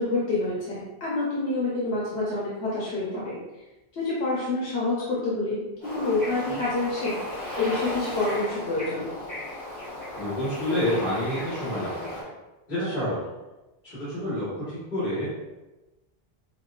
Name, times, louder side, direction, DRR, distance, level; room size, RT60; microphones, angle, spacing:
voice 1, 0.0-3.4 4.0-5.6 5.9-9.1, left 2 dB, 85° left, -7 dB, 1.1 m, -27 dB
Bird / Ocean, 5.8-12.2, left 1 dB, 30° left, 1.5 m, -35 dB
voice 2, 10.2-12.3 12.7-13.2 13.8-15.3, left 1 dB, 55° left, -12 dB, 1.7 m, -28 dB
5.7 x 2.3 x 2.4 m, 1.1 s
omnidirectional pair, 1.1 m